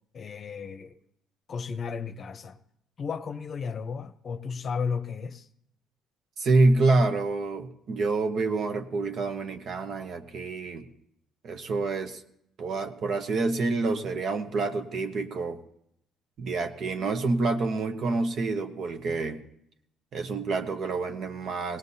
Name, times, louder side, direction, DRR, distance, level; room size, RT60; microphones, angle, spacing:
voice 1, 0.1-0.9 1.5-2.6 3.0-5.5, left 5 dB, 45° left, 0.7 m, -34 dB
voice 2, 6.4-10.9 11.4-12.2 12.6-15.6 16.4-19.4 20.1-21.8, right 3 dB, 60° right, 1.0 m, -27 dB
19.0 x 17.5 x 2.8 m
cardioid pair, 90°, 0 cm